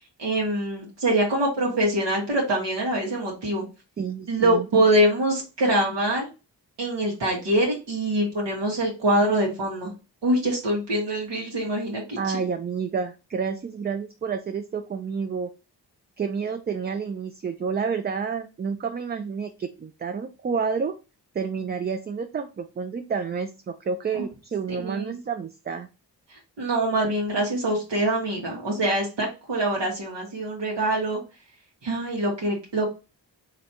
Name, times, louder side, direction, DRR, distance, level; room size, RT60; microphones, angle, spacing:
voice 1, 0.2-3.6 4.3-6.3 6.8-9.9 10.2-12.4 24.2-24.3 24.8-25.2 26.6-31.2 31.8-32.9, right 1 dB, 80° right, -2 dB, 1.1 m, -24 dB
voice 2, 4.0-4.7 12.2-15.5 16.2-21.0 21.3-25.9, right 6 dB, 25° right, 7 dB, 0.3 m, -29 dB
3.2 x 2.6 x 2.7 m, 0.29 s
cardioid pair, 40°, 43 cm